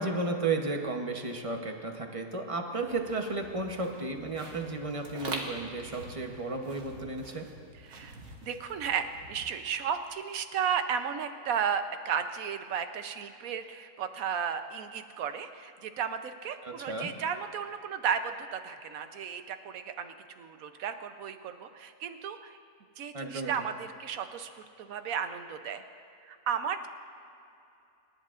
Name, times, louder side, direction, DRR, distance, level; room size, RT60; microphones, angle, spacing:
voice 1, 0.0-7.5 16.6-17.1 23.1-23.5, right 3 dB, 30° right, 3 dB, 0.8 m, -33 dB
sound 1, 2.8-10.1, right 2 dB, 85° right, 1.8 m, -45 dB
voice 2, 8.4-22.5 23.0-24.5 24.8-25.8 26.3-26.9, right 7 dB, 70° right, 8 dB, 1.1 m, -34 dB
26.5 x 11.0 x 2.5 m, 2.8 s
omnidirectional pair, 1.6 m